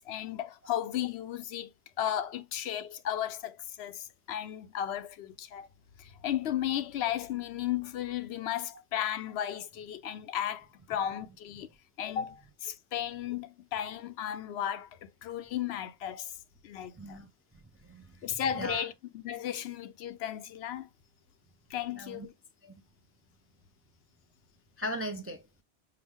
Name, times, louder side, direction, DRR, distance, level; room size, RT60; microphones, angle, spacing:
voice 1, 0.0-1.7 2.0-5.7 6.0-11.7 12.0-16.3 16.6-17.2 18.2-20.9 21.7-22.3, left 10 dB, 75° left, 0.8 m, -35 dB
voice 2, 16.9-17.3 17.8-18.9 22.0-22.3 22.6-22.8 24.8-25.4, equal, 20° right, 0.4 m, -39 dB
5.7 x 2.2 x 3.5 m
omnidirectional pair, 1.1 m